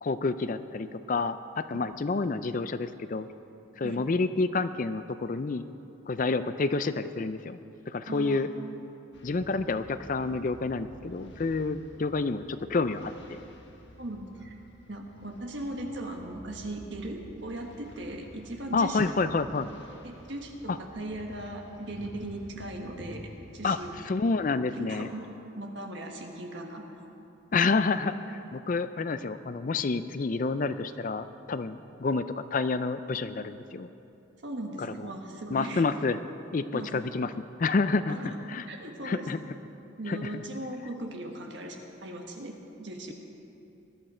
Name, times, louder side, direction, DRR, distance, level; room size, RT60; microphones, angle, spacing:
voice 1, 0.0-3.3 3.8-5.7 6.1-7.6 7.9-8.5 9.2-13.4 18.7-19.7 20.7-20.8 23.6-25.1 27.5-33.9 34.8-35.1 35.5-36.2 36.5-37.3 37.6-38.2 38.5-38.7 39.0-39.4 40.1-40.4, left 3 dB, 40° left, 12 dB, 0.4 m, -29 dB
voice 2, 8.1-8.4 14.0-14.6 14.9-19.1 20.0-23.9 24.7-25.3 25.5-26.8 34.4-35.9 36.7-36.9 38.1-38.4 38.6-39.3 40.0-43.1, right 1 dB, 60° right, 2 dB, 1.6 m, -38 dB
sound 1, 9.1-24.0, equal, 60° left, 1.5 m, -50 dB
20.0 x 11.5 x 4.4 m, 2.8 s
head